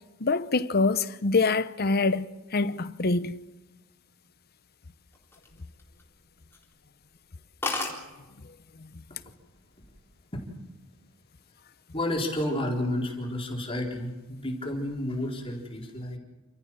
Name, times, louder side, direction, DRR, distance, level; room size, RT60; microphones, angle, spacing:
voice 1, 0.2-2.3 2.5-3.3 8.8-8.9, left 3 dB, 45° left, 0.9 m, -25 dB
sound 1, 5.1-6.1 6.5-6.7 7.1-7.2 7.4-7.5 7.6-8.0 8.9-9.2 9.6-10.0, left 2 dB, 10° left, 3.9 m, -33 dB
voice 2, 11.9-16.2, left 1 dB, 25° left, 4.1 m, -31 dB
29.5 x 14.0 x 7.4 m
head